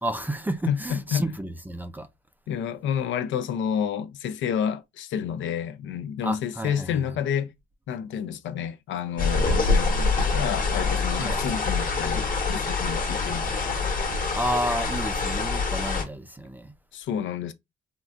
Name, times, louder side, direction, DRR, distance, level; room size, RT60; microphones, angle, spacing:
voice 1, 0.0-2.1 6.2-7.0 11.2-11.4 14.4-16.7, right 1 dB, 10° right, 0.3 m, -31 dB
voice 2, 0.7-1.2 2.5-7.5 7.9-13.8 16.9-17.5, left 8 dB, 75° left, 0.5 m, -29 dB
sound 1, 9.2-16.0, left 4 dB, 45° left, 1.1 m, -25 dB
3.8 x 2.2 x 2.4 m
cardioid pair, 90°, 20 cm